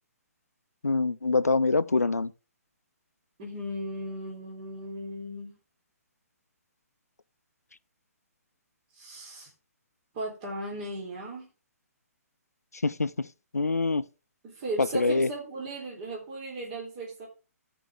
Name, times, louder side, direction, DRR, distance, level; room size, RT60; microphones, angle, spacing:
voice 1, 0.8-2.3 12.8-13.3 13.5-14.1 14.8-15.3, left 3 dB, 75° left, 0.5 m, -25 dB
voice 2, 3.4-5.5 9.0-9.5 10.1-11.5 14.4-17.3, right 1 dB, 30° right, 3.3 m, -36 dB
14.0 x 5.4 x 3.5 m
figure-of-eight pair, 130°, 8 cm